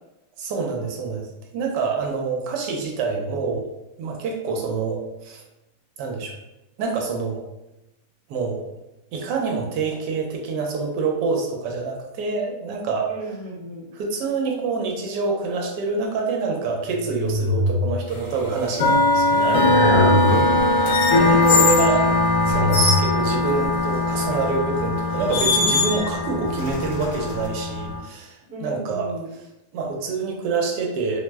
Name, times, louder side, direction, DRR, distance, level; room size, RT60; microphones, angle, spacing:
voice 1, 0.4-1.3 1.5-3.6 4.0-5.4 6.0-6.3 6.8-7.4 8.3-8.7 9.1-13.1 13.9-19.7 20.0-20.2 20.7-20.8 21.2-22.1 22.5-29.4 29.7-31.2, right 4 dB, 85° right, 1 dB, 1.2 m, -26 dB
voice 2, 13.1-13.9 19.8-20.8 21.4-22.2 28.5-29.3, right 1 dB, 60° right, -5 dB, 1.0 m, -32 dB
sound 1, 16.8-18.2 19.1-20.9 21.5-23.0, left 1 dB, 45° left, 1.1 m, -25 dB
sound 2, 18.2-28.0, left 2 dB, 60° left, 0.9 m, -21 dB
sound 3, 20.9-21.9 22.5-23.1 24.4-24.6 25.3-26.2 26.6-27.5, left 5 dB, 80° left, 1.1 m, -23 dB
2.9 x 2.0 x 3.2 m, 0.95 s
omnidirectional pair, 1.8 m